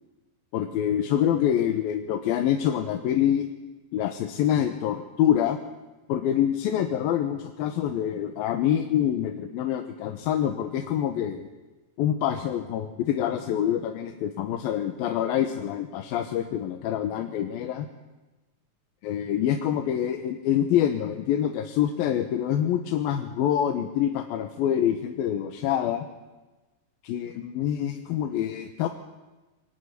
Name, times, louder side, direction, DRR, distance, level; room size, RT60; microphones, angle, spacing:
voice 1, 0.5-3.5 3.9-5.6 6.1-11.5 12.0-17.9 19.0-26.1 27.0-28.9, left 10 dB, 85° left, 5 dB, 3.0 m, -26 dB
24.5 x 18.5 x 9.6 m, 1.2 s
omnidirectional pair, 4.2 m